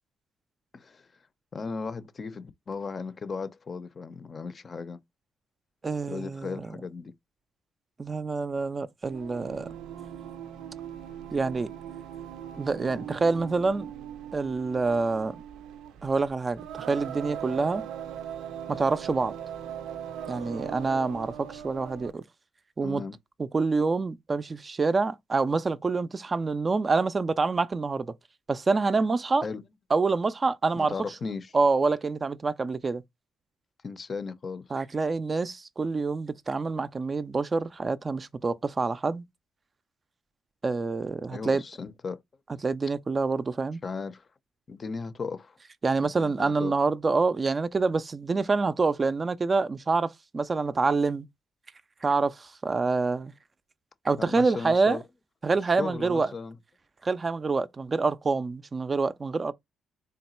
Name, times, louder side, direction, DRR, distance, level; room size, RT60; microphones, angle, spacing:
voice 1, 0.7-1.1 1.5-5.0 6.1-7.1 22.8-23.2 29.4-29.6 30.8-31.6 33.8-34.8 41.3-42.2 43.8-44.3 44.7-45.6 46.0-46.7 54.2-55.0 55.6-56.6, left 4 dB, 40° left, 0.5 m, -36 dB
voice 2, 5.8-6.7 8.0-9.7 11.3-11.7 12.6-13.9 14.3-15.4 16.0-17.8 18.7-19.3 20.3-22.2 22.8-23.0 23.5-28.1 28.5-29.5 29.9-30.9 31.5-33.0 34.7-39.2 40.6-41.6 42.6-43.8 45.8-51.3 52.0-53.3 54.0-55.0 55.4-56.3 57.0-59.5, right 4 dB, 30° right, 0.4 m, -26 dB
Singing, 9.0-22.2, right 9 dB, 90° right, 0.5 m, -40 dB
3.8 x 2.2 x 4.2 m
cardioid pair, 90°, 0 cm